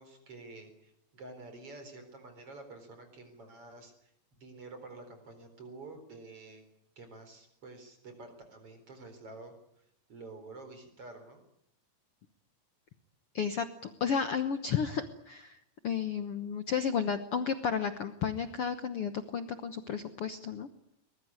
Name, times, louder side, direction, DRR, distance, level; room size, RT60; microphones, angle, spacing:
voice 1, 0.0-4.1 4.4-6.6 7.0-9.5 10.1-11.4, right 3 dB, 40° right, 8 dB, 4.8 m, -49 dB
voice 2, 13.3-15.6 15.8-20.7, left 7 dB, 75° left, 10 dB, 1.3 m, -32 dB
22.5 x 21.5 x 9.6 m, 0.75 s
omnidirectional pair, 4.3 m